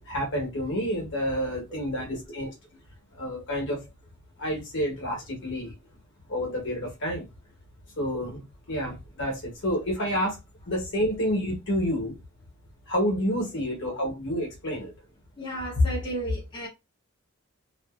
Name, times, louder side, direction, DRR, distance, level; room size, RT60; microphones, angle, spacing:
voice 1, 0.1-2.5 3.1-3.8 4.4-5.7 6.3-7.3 8.0-10.4 10.7-12.1 12.9-14.9, equal, 55° left, 1.1 m, -29 dB
voice 2, 15.4-16.7, left 2 dB, 20° left, 0.7 m, -27 dB
2.6 x 2.5 x 2.3 m
head